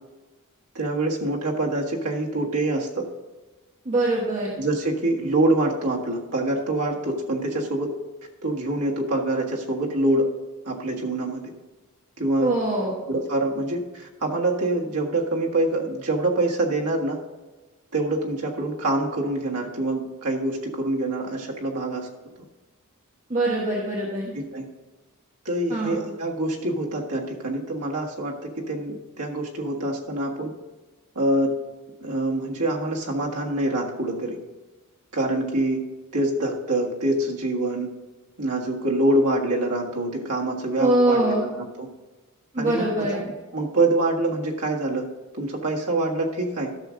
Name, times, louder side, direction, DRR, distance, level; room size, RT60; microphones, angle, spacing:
voice 1, 0.7-3.0 4.6-7.9 8.4-10.3 10.6-11.4 12.2-12.5 13.1-17.2 17.9-22.1 24.3-24.7 25.4-30.5 31.1-31.5 32.0-34.4 35.1-35.8 36.1-37.9 38.4-41.9 42.6-45.1 45.3-46.7, right 2 dB, 85° right, -1 dB, 1.6 m, -25 dB
voice 2, 3.8-4.5 12.4-12.9 23.3-24.3 25.7-26.0 40.8-41.5 42.5-43.2, right 1 dB, 35° right, -3 dB, 1.3 m, -23 dB
13.5 x 6.3 x 3.8 m, 1.2 s
head